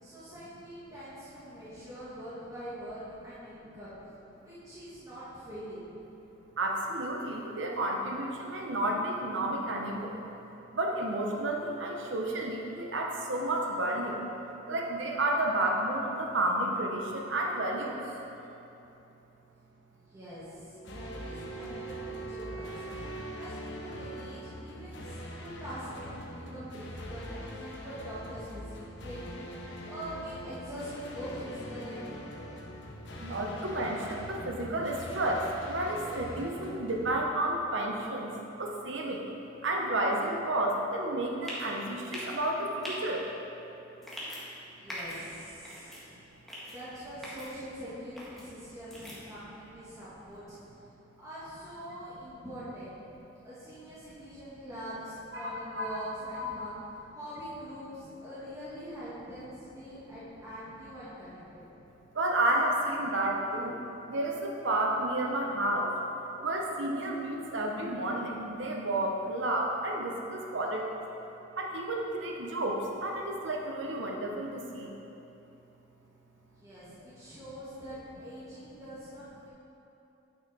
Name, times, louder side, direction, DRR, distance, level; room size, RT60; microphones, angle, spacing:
voice 1, 0.0-3.9 4.4-5.8 19.9-22.9 23.3-29.3 29.8-32.6 44.6-46.1 46.6-50.6 51.2-53.0 53.4-56.8 57.1-61.6 76.6-79.5, equal, 15° right, -12 dB, 1.6 m, -44 dB
voice 2, 6.6-10.2 10.7-14.2 14.7-18.0 33.2-39.3 39.6-43.3 55.3-56.0 56.3-56.4 62.1-63.8 64.1-71.0 71.6-74.9, right 1 dB, 70° right, 0 dB, 0.8 m, -31 dB
Wind instrument woodwind instrument, 20.7-24.8, right 5 dB, 85° left, 1.7 m, -44 dB
sound 1, 20.8-37.9, left 1 dB, 65° left, 0.9 m, -43 dB
sound 2, 41.4-41.7 42.1-42.3 42.8-42.9 44.0-44.4 44.9-45.2 45.6-46.0 46.5-46.7 47.2-47.5 48.2-48.4 48.9-49.2, equal, ahead, 1.6 m, -40 dB
9.5 x 5.7 x 4.0 m, 2.9 s
head